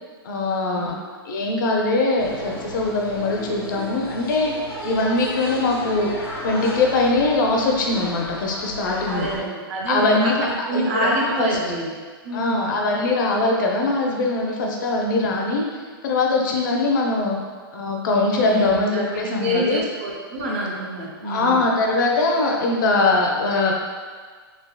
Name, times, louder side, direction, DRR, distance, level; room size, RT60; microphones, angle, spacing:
voice 1, 0.2-0.9 1.3-4.5 4.8-6.1 6.4-9.3 9.9-11.6 12.3-15.7 16.0-17.4 17.7-19.8 21.2-23.8, left 2 dB, 50° left, 0 dB, 0.5 m, -22 dB
sound 1, 2.2-9.4, left 1 dB, 90° left, 1.1 m, -34 dB
voice 2, 9.1-11.9 12.2-12.7 18.5-21.6, right 1 dB, 35° right, -2 dB, 0.5 m, -27 dB
3.4 x 2.6 x 2.2 m, 1.5 s
hypercardioid pair, 170°, 13 cm